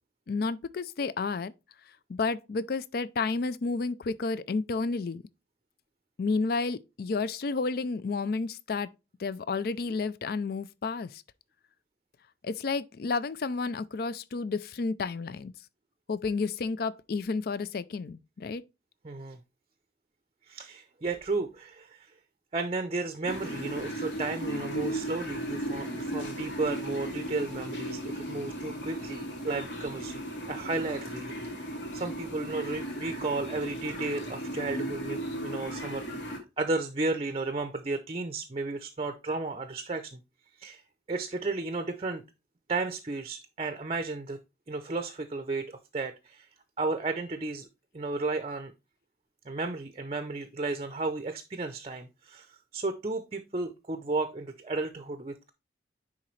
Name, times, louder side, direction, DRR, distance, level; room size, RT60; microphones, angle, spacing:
voice 1, 0.3-1.5 2.1-5.2 6.2-8.9 9.2-11.2 12.4-15.5 16.1-18.6, left 4 dB, 55° left, 0.4 m, -31 dB
voice 2, 19.0-19.4 20.5-22.1 22.5-30.2 30.5-31.5 31.9-40.2 40.6-40.8 41.1-42.2 42.7-44.4 44.7-46.5 46.8-47.7 47.9-48.7 49.5-55.5, right 3 dB, 30° right, 0.6 m, -33 dB
sound 1, 23.2-36.4, right 1 dB, 75° left, 2.2 m, -36 dB
9.9 x 3.8 x 3.1 m
head